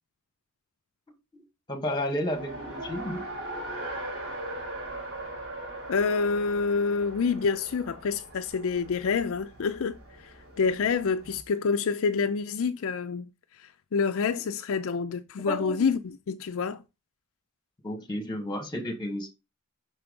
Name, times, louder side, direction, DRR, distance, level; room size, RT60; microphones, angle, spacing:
voice 1, 1.7-3.2 15.4-15.8 17.8-19.3, left 1 dB, 20° left, 1.5 m, -32 dB
Race car auto racing, 2.3-11.4, right 1 dB, 65° right, 4.2 m, -40 dB
voice 2, 5.9-13.3 13.6-16.8, left 5 dB, 65° left, 0.4 m, -27 dB
6.0 x 4.6 x 5.2 m
head